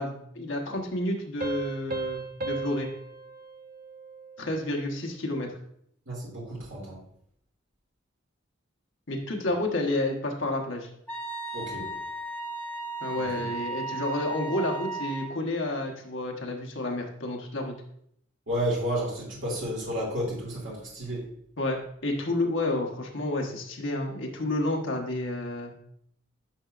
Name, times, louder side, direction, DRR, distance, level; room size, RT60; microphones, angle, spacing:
voice 1, 0.0-2.9 4.4-5.5 9.1-10.9 13.0-17.7 21.6-25.7, left 1 dB, 70° left, 2 dB, 1.2 m, -30 dB
Piano, 1.4-4.7, right 3 dB, 50° right, 0.7 m, -36 dB
voice 2, 6.1-7.0 11.5-11.9 13.2-13.4 18.5-21.2, equal, 75° right, -5 dB, 2.2 m, -31 dB
Wind instrument woodwind instrument, 11.1-15.3, right 2 dB, 10° left, 0.9 m, -35 dB
9.6 x 5.9 x 2.5 m, 0.69 s
head